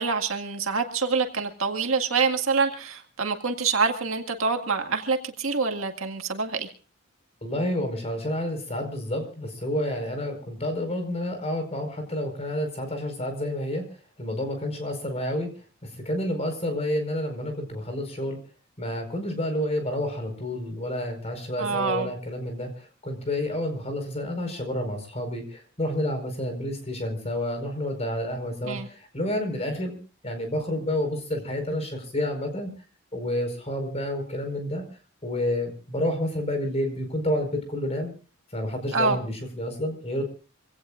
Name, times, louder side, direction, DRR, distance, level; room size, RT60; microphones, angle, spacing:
voice 1, 0.0-6.7 21.6-22.1 28.6-28.9 38.9-39.2, right 4 dB, 70° right, 4 dB, 2.0 m, -26 dB
voice 2, 7.4-13.8 14.2-15.5 15.8-18.4 18.8-30.0 30.2-32.7 33.1-34.8 35.2-38.1 38.5-40.2, left 1 dB, 30° left, 6 dB, 4.8 m, -29 dB
26.0 x 17.5 x 2.5 m, 0.36 s
head